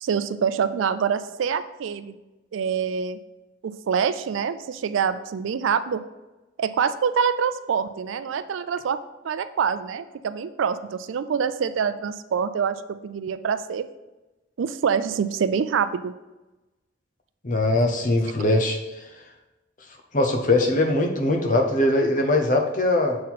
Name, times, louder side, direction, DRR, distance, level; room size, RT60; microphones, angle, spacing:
voice 1, 0.0-2.2 2.5-3.2 3.6-6.0 6.6-9.0 9.2-13.9 14.6-16.1, right 6 dB, 80° right, 13 dB, 0.4 m, -25 dB
voice 2, 17.4-18.8 20.1-23.2, left 2 dB, 40° left, 3 dB, 0.7 m, -21 dB
7.5 x 4.3 x 4.1 m, 1.1 s
head